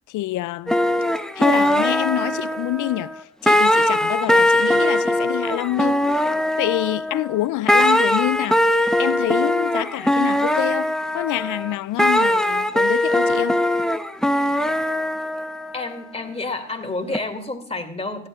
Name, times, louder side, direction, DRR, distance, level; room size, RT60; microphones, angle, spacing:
voice 1, 0.1-0.7 1.4-3.1 3.4-6.1 6.6-8.7 9.0-13.6, left 16 dB, 70° left, 0.4 m, -26 dB
sound 1, 0.7-3.2 3.5-7.4 7.7-15.8 17.1-17.2, left 1 dB, ahead, 0.9 m, -20 dB
voice 2, 15.7-18.3, left 2 dB, 20° left, 2.4 m, -29 dB
16.5 x 11.0 x 2.4 m
supercardioid pair, 50°, 32 cm